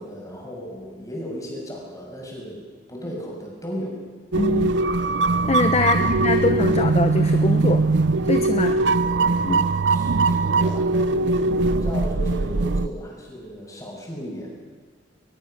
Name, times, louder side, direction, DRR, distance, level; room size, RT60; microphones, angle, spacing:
voice 1, 0.0-2.6 2.9-4.0 5.8-6.3 8.7-9.1 9.8-14.6, equal, 20° left, -2 dB, 6.7 m, -35 dB
voice 2, 4.3-4.8 5.4-7.8 8.3-8.8 9.4-9.6, left 2 dB, 35° left, 7 dB, 0.9 m, -23 dB
sound 1, 4.3-12.9, right 3 dB, 70° right, 0.6 m, -21 dB
21.5 x 20.5 x 6.6 m, 1.4 s
head